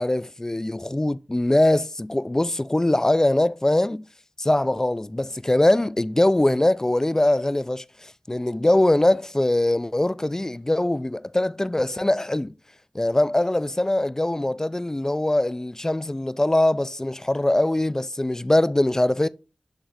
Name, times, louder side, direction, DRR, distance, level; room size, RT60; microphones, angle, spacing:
voice 1, 0.0-4.0 4.4-12.5 12.9-19.3, left 1 dB, 20° left, 0.3 m, -22 dB
8.0 x 3.6 x 3.3 m
cardioid pair, 40°, 2 cm